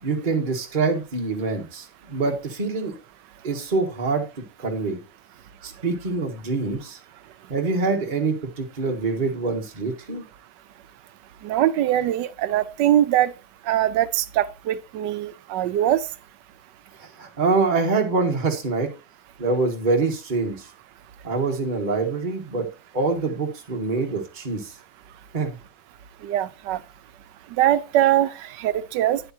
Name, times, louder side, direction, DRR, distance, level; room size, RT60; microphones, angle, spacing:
voice 1, 0.0-2.9 3.4-4.2 4.6-5.0 5.6-7.0 7.5-10.2 17.0-18.9 19.4-20.7 21.2-22.7 22.9-24.7 25.3-25.6, right 3 dB, 30° right, 1.5 m, -25 dB
voice 2, 11.4-13.3 13.7-16.0 26.2-26.8 27.6-29.2, right 12 dB, 85° right, 1.3 m, -22 dB
9.6 x 7.9 x 2.7 m
omnidirectional pair, 1.9 m